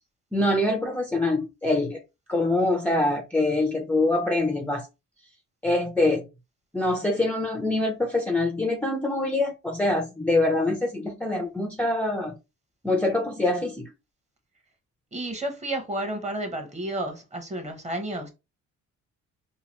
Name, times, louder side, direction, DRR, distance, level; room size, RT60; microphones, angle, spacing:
voice 1, 0.3-2.0 2.3-4.9 5.6-6.3 6.7-12.4 12.8-13.9, left 2 dB, 5° left, 0.5 m, -24 dB
voice 2, 15.1-18.3, right 1 dB, 25° right, 1.0 m, -31 dB
3.0 x 2.3 x 2.9 m
cardioid pair, 90°, 30 cm